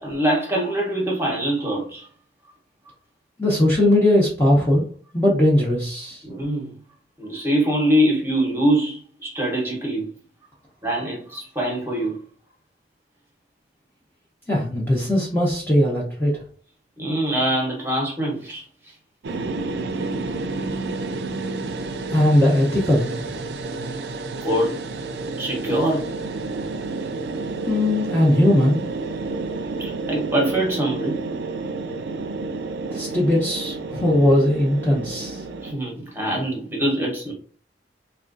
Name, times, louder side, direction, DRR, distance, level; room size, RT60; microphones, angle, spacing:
voice 1, 0.0-2.1 6.2-6.7 7.2-10.1 10.8-12.2 17.0-18.6 24.4-24.8 25.4-26.1 29.8-31.2 35.6-37.3, right 1 dB, 15° right, 0.9 m, -23 dB
voice 2, 3.4-4.8 5.1-6.2 14.5-16.4 22.1-23.3 27.7-28.8 32.9-35.4, left 1 dB, 10° left, 0.7 m, -19 dB
sound 1, 19.2-35.7, right 3 dB, 70° right, 0.4 m, -30 dB
3.6 x 2.3 x 2.5 m
head